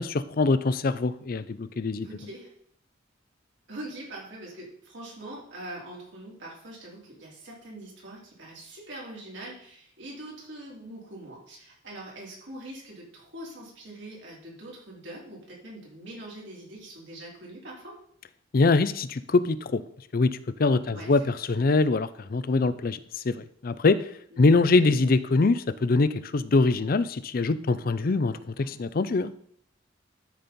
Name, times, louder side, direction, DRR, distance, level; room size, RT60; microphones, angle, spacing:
voice 1, 0.0-2.1 18.5-19.8 20.1-23.0 23.2-24.0 24.4-29.3, left 3 dB, 50° left, 14 dB, 0.5 m, -23 dB
voice 2, 2.0-2.5 3.7-18.0 20.8-21.4 24.3-24.5 28.5-28.8, right 1 dB, 70° right, -4 dB, 3.6 m, -43 dB
12.5 x 4.3 x 5.3 m, 0.65 s
head